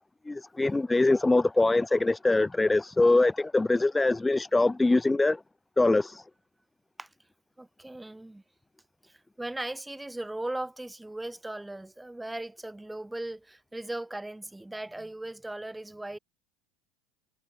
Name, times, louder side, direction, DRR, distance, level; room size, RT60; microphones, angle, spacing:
voice 1, 0.3-5.4 5.8-6.2, left 2 dB, 10° left, 0.7 m, -23 dB
voice 2, 7.6-8.4 9.1-16.2, right 1 dB, 5° right, 2.1 m, -38 dB
supercardioid pair, 105°, 0 cm